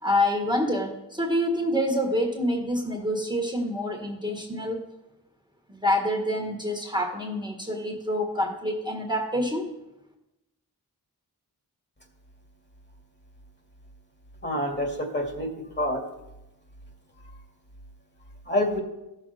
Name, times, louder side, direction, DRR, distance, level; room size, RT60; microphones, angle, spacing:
voice 1, 0.0-4.9 5.7-9.7, left 1 dB, 10° right, 1 dB, 1.7 m, -27 dB
voice 2, 14.4-16.0 18.5-18.8, left 1 dB, 30° left, 2 dB, 2.3 m, -27 dB
14.5 x 6.5 x 4.2 m, 0.93 s
cardioid pair, 55°, 38 cm